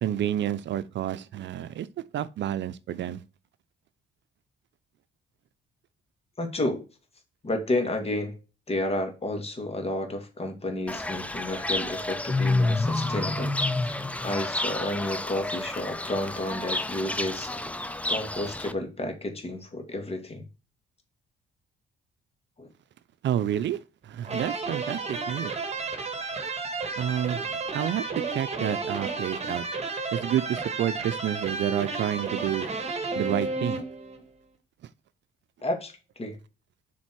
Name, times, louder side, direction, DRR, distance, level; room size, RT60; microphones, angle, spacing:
voice 1, 0.0-1.9 2.1-3.2 23.2-25.5 26.9-29.7 30.1-32.7 33.2-33.8, right 11 dB, 65° right, 0.6 m, -29 dB
voice 2, 6.4-6.8 7.4-8.3 8.7-13.5 13.8-17.5 18.1-20.4 22.6-22.7 35.6-36.4, left 1 dB, 30° left, 2.4 m, -31 dB
Fowl / Bird, 10.9-18.7, left 2 dB, 5° left, 0.7 m, -29 dB
sound 1, 24.2-34.2, right 3 dB, 35° right, 1.9 m, -32 dB
7.1 x 4.4 x 4.6 m
cardioid pair, 90°, 20 cm